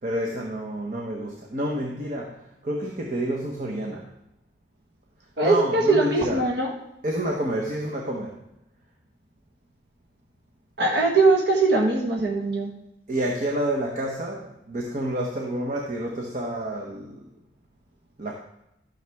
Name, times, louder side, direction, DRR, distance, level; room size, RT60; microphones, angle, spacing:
voice 1, 0.0-4.1 5.4-6.5 7.0-8.4 13.1-17.3 18.2-18.3, right 1 dB, 40° right, -1 dB, 0.9 m, -29 dB
voice 2, 5.4-6.7 10.8-12.7, right 3 dB, 60° right, -1 dB, 1.3 m, -21 dB
12.5 x 6.5 x 3.5 m, 0.84 s
head